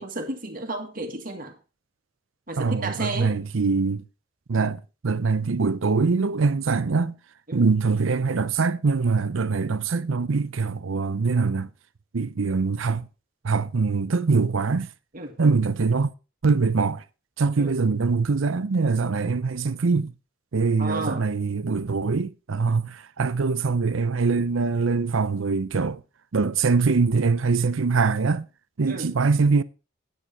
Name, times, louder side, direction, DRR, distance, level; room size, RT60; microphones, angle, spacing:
voice 1, 0.0-1.6 2.5-3.3 7.5-7.7 15.1-15.4 17.6-17.7 20.8-21.3 28.9-29.1, right 2 dB, 45° right, 1.9 m, -32 dB
voice 2, 2.6-4.0 4.5-7.2 7.5-11.7 12.1-13.1 13.4-14.9 15.4-16.1 16.4-17.0 17.4-20.1 20.5-26.0 26.3-28.5 28.8-29.6, right 4 dB, 80° right, 0.6 m, -23 dB
10.0 x 8.4 x 4.2 m
head